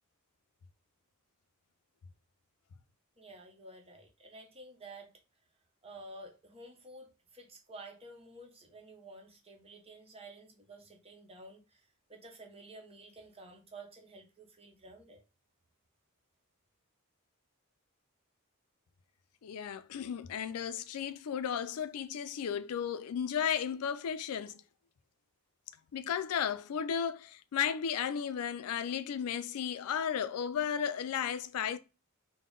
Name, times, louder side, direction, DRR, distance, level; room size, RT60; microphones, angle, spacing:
voice 1, 3.2-5.1 5.8-11.8 12.1-15.2, right 2 dB, 25° right, 0.9 m, -51 dB
voice 2, 19.4-24.6 25.9-31.8, left 8 dB, 85° left, 0.4 m, -34 dB
3.7 x 2.1 x 3.7 m
head